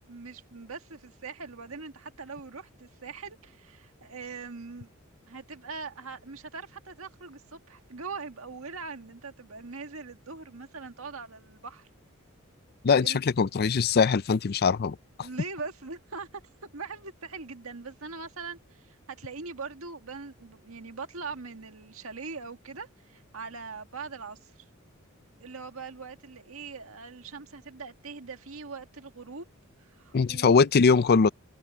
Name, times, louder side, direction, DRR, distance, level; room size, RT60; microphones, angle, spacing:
voice 1, 0.1-4.9 5.3-11.9 13.0-13.2 15.2-16.3 16.7-24.5 25.4-29.5 29.8-30.7, right 4 dB, 75° right, 1.8 m, -41 dB
voice 2, 12.8-14.9 30.1-31.3, left 5 dB, 50° left, 0.5 m, -21 dB
head